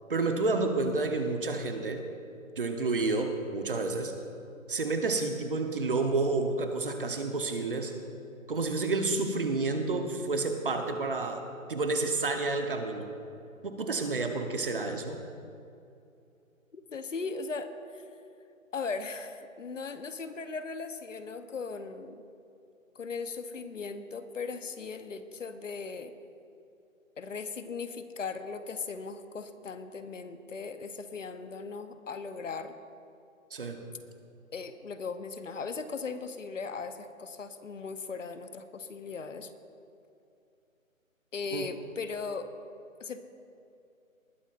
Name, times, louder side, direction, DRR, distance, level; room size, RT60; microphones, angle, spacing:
voice 1, 0.1-2.0 2.6-4.2 4.7-8.0 8.5-11.4 11.7-13.1 13.6-15.2 33.5-33.8 41.5-41.7, right 3 dB, 40° right, 5 dB, 1.0 m, -30 dB
voice 2, 16.7-18.0 18.7-22.2 22.9-26.1 27.2-32.7 34.5-39.5 41.3-42.5 43.0-43.2, left 4 dB, 65° left, 10 dB, 1.0 m, -38 dB
20.0 x 12.5 x 2.6 m, 2.6 s
hypercardioid pair, 165°, 41 cm